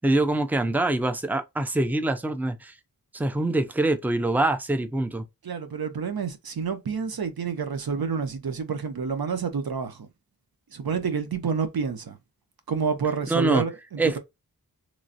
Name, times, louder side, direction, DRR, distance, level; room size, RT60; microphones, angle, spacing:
voice 1, 0.0-2.8 3.1-5.3 13.3-13.6 14.0-14.2, right 2 dB, 5° right, 0.5 m, -24 dB
voice 2, 5.4-10.1 10.7-12.2 12.7-14.2, right 6 dB, 90° right, 0.6 m, -28 dB
3.1 x 2.4 x 2.5 m
wide cardioid pair, 45°, 35 cm